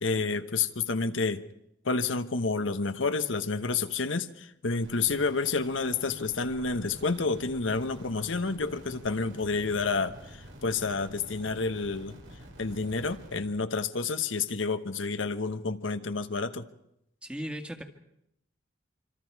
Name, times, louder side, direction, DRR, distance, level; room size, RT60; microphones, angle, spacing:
voice 1, 0.0-1.4 1.8-12.2 12.6-16.7, left 4 dB, 80° left, 9 dB, 1.1 m, -29 dB
sound 1, 4.8-13.4, right 1 dB, 80° right, 5.7 m, -48 dB
voice 2, 17.2-17.8, equal, 5° right, 5 dB, 1.8 m, -36 dB
26.0 x 26.0 x 4.7 m, 0.77 s
head